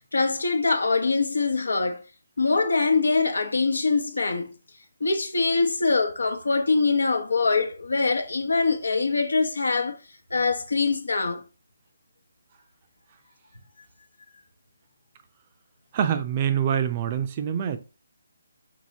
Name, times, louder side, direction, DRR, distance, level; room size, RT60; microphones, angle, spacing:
voice 1, 0.0-2.0 2.4-4.5 5.0-10.0 10.3-11.4, left 4 dB, 80° left, 0.8 m, -23 dB
voice 2, 15.9-17.8, right 8 dB, 35° right, 0.6 m, -25 dB
4.6 x 4.1 x 2.8 m
figure-of-eight pair, 150°, 0 cm